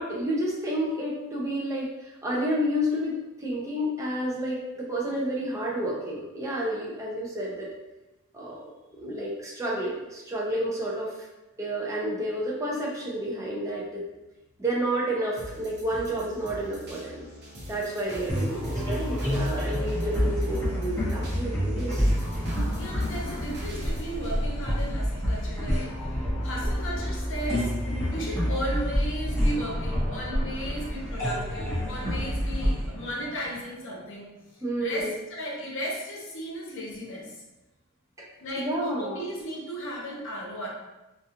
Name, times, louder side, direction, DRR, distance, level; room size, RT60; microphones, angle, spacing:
voice 1, 0.0-7.7 8.3-8.6 9.0-11.3 11.6-14.0 14.6-17.2 17.7-22.1 34.6-35.1 38.2-38.3 38.6-39.3, right 1 dB, 15° right, -4 dB, 0.5 m, -30 dB
sound 1, 15.4-25.4 25.9-26.0, equal, 50° right, 0.7 m, -44 dB
sound 2, 18.3-33.9, equal, 15° left, 0.8 m, -28 dB
voice 2, 22.8-25.9 26.4-27.7 28.1-34.3 34.8-37.3 38.4-38.7 39.0-40.7, equal, 60° left, -3 dB, 0.7 m, -35 dB
2.4 x 2.3 x 2.7 m, 1.0 s
head